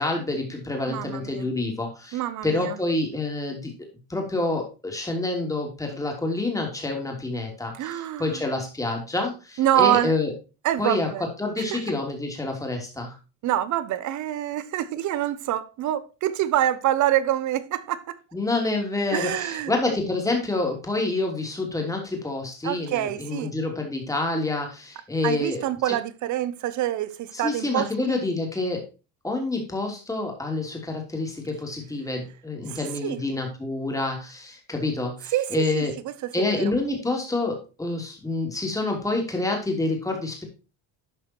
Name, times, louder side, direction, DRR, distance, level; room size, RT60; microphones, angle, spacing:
voice 1, 0.0-10.3 10.8-11.1 11.4-13.1 18.3-26.0 27.3-28.8 29.2-35.9 36.3-40.4, left 2 dB, 10° left, 3.0 m, -28 dB
voice 2, 0.9-1.5 2.1-2.8 7.8-8.4 9.6-10.1 10.6-11.2 11.6-11.8 13.4-18.2 19.1-19.7 22.6-23.5 25.2-28.2 32.7-33.2 35.3-36.7, right 12 dB, 50° right, 0.9 m, -26 dB
12.0 x 4.9 x 4.5 m
cardioid pair, 135°, 37 cm